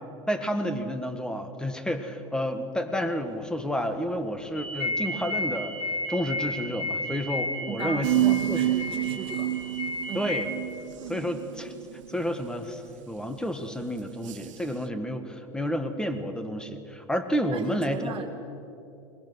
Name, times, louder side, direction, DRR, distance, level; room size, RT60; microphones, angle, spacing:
voice 1, 0.3-5.7 6.1-8.7 10.1-10.6 11.1-11.7 12.1-18.1, equal, 5° left, 8 dB, 1.8 m, -30 dB
sound 1, 4.5-10.4, left 1 dB, 40° left, 6.0 m, -32 dB
voice 2, 7.7-9.5 10.1-10.2 17.5-18.3, right 8 dB, 35° right, 0 dB, 2.4 m, -36 dB
sound 2, 8.0-12.6 14.3-14.7, right 14 dB, 80° right, 0.6 m, -29 dB
21.5 x 20.0 x 6.3 m, 2.8 s
hypercardioid pair, 95°, 16 cm